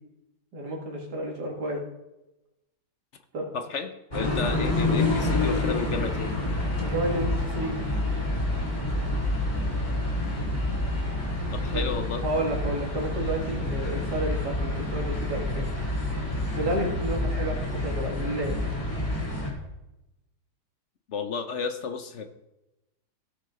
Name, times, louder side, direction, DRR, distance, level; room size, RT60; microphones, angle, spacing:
voice 1, 0.5-1.8 3.3-3.5 6.8-7.8 11.7-11.9 12.2-15.7 16.5-18.6, right 1 dB, 70° right, -1 dB, 2.8 m, -31 dB
voice 2, 3.5-6.3 11.5-12.2 21.1-22.3, left 5 dB, 55° left, 9 dB, 0.9 m, -32 dB
sound 1, 4.1-19.5, left 1 dB, 25° left, 2.4 m, -28 dB
16.5 x 6.3 x 3.8 m, 0.95 s
omnidirectional pair, 1.8 m